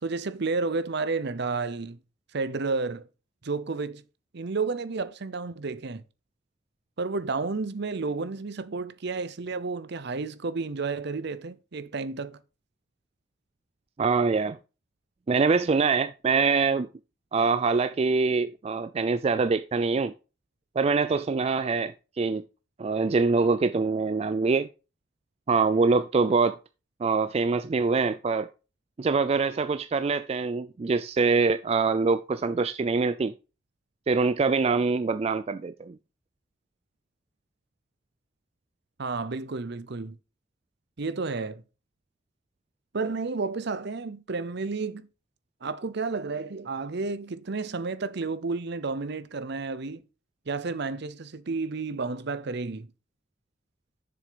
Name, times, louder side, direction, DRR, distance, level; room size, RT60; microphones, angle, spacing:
voice 1, 0.0-2.0 2.3-3.1 3.4-4.0 4.3-6.0 7.0-12.4 39.0-40.2 41.0-41.6 42.9-45.1 45.6-50.0 50.5-52.9, right 4 dB, 55° right, 0.7 m, -31 dB
voice 2, 14.0-14.6 15.3-16.9 17.3-20.1 20.8-22.4 22.8-24.7 25.5-26.6 27.0-28.5 29.0-33.3 34.1-36.0, right 4 dB, 30° right, 0.3 m, -24 dB
7.0 x 6.8 x 5.1 m
head